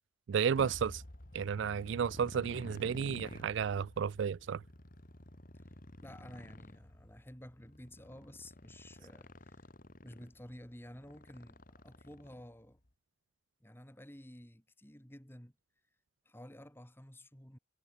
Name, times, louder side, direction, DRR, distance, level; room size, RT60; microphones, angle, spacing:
voice 1, 0.3-1.0 1.3-4.6, right 7 dB, 65° right, 0.3 m, -32 dB
Motorcycle, 0.5-12.7, left 1 dB, 45° left, 2.4 m, -51 dB
voice 2, 6.0-9.6 10.0-12.8 13.6-15.5 16.2-17.6, left 1 dB, 10° left, 2.7 m, -52 dB
head